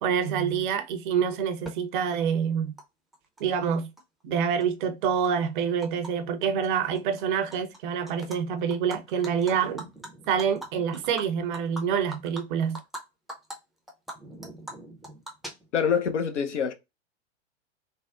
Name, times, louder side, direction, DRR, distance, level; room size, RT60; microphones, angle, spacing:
voice 1, 0.0-2.7 3.4-3.9 4.2-9.9 10.3-12.8, right 7 dB, 45° right, 0.6 m, -27 dB
Animal, 1.6-1.7 2.8-2.9 3.1-4.0 4.4-6.1 6.4-6.7 6.9-7.8 8.1-8.4 8.7-13.0 13.3-13.5 13.9-16.0, right 1 dB, ahead, 0.4 m, -42 dB
voice 2, 15.7-16.7, left 7 dB, 80° left, 0.6 m, -25 dB
3.4 x 2.1 x 2.3 m
figure-of-eight pair, 95°, 35 cm